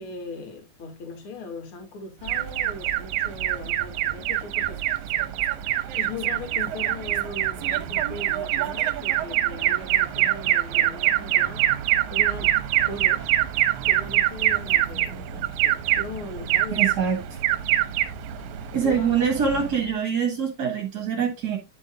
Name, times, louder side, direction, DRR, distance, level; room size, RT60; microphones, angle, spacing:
voice 1, 0.0-5.3 5.9-12.5 12.9-13.3 13.9-16.9 18.4-18.5 18.8-19.3, left 3 dB, 45° left, 2.8 m, -39 dB
Alarm, 2.3-19.9, right 13 dB, 75° right, 2.1 m, -25 dB
voice 2, 16.7-17.2 18.7-21.6, right 6 dB, 35° right, 2.1 m, -24 dB
10.5 x 7.0 x 2.4 m
omnidirectional pair, 3.7 m